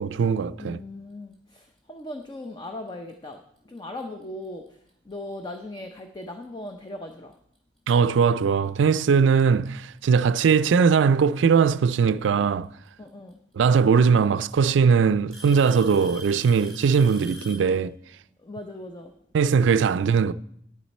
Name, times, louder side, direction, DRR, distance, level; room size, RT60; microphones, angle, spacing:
voice 1, 0.0-0.8 7.9-12.7 13.6-18.0 19.3-20.3, right 6 dB, 85° right, 0.4 m, -20 dB
voice 2, 0.6-3.4 3.7-4.6 5.1-7.3 13.0-13.4 18.4-19.1, left 1 dB, 25° left, 0.6 m, -38 dB
Alarm / Tick-tock, 3.8-4.0 4.9-5.0 5.8-5.9 7.5-7.6 8.9-9.0 10.2-10.7 12.4-12.5 13.7-13.8 14.2-14.6 15.3-17.7, equal, 5° left, 2.4 m, -43 dB
10.0 x 9.6 x 4.2 m
head